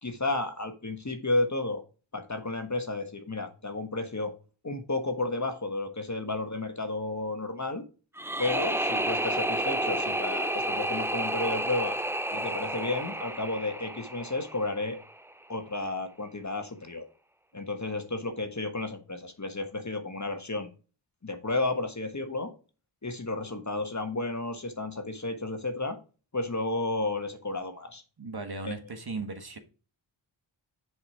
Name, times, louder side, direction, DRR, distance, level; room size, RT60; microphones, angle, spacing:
voice 1, 0.0-1.8 2.1-4.3 4.6-7.8 8.4-12.0 12.3-15.0 15.5-17.1 17.5-20.7 21.2-22.5 23.0-26.0 26.3-28.0 28.6-28.8, left 2 dB, 35° left, 1.4 m, -32 dB
sound 1, 8.2-15.1, right 1 dB, 5° right, 0.5 m, -31 dB
voice 2, 28.2-29.6, right 3 dB, 50° right, 1.5 m, -37 dB
7.2 x 5.0 x 4.8 m
cardioid pair, 45°, 50 cm